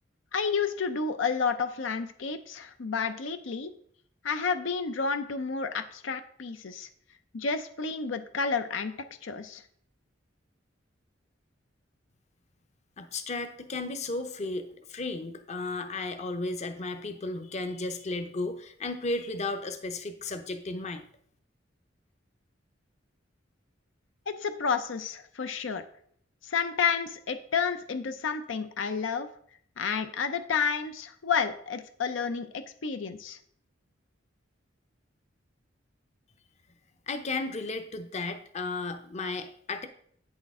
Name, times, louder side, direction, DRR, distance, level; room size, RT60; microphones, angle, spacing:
voice 1, 0.3-3.7 4.2-6.9 7.3-8.9 9.2-9.6 24.3-25.8 26.4-29.3 29.8-33.4, left 5 dB, 90° left, 9 dB, 0.6 m, -30 dB
voice 2, 13.0-21.0 37.1-39.9, left 3 dB, 35° left, 8 dB, 0.7 m, -34 dB
8.7 x 6.3 x 3.6 m, 0.62 s
head